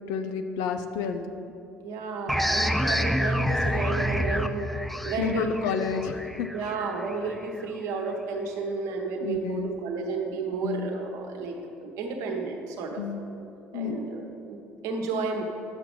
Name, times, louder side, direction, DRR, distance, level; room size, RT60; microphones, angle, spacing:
voice 1, 0.1-1.2 5.2-6.5 9.2-9.7 10.6-10.9 13.0-13.3 13.7-14.0, left 6 dB, 65° left, 7 dB, 0.5 m, -30 dB
voice 2, 1.8-5.6 6.5-13.0 13.7-14.2 14.5-14.6 14.8-15.4, right 4 dB, 60° right, 2 dB, 1.0 m, -32 dB
sound 1, 2.3-7.6, equal, ahead, 0.3 m, -28 dB
9.8 x 6.8 x 3.7 m, 2.9 s
figure-of-eight pair, 55°, 7 cm